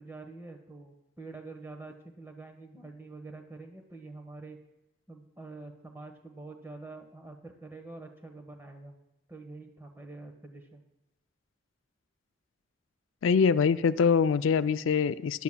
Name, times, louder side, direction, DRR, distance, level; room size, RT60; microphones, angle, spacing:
voice 1, 0.0-4.6 5.1-9.0 9.3-10.8, right 3 dB, 10° right, 2 dB, 1.2 m, -46 dB
voice 2, 13.2-15.4, left 6 dB, 85° left, 13 dB, 0.4 m, -24 dB
21.5 x 11.0 x 2.3 m, 0.89 s
head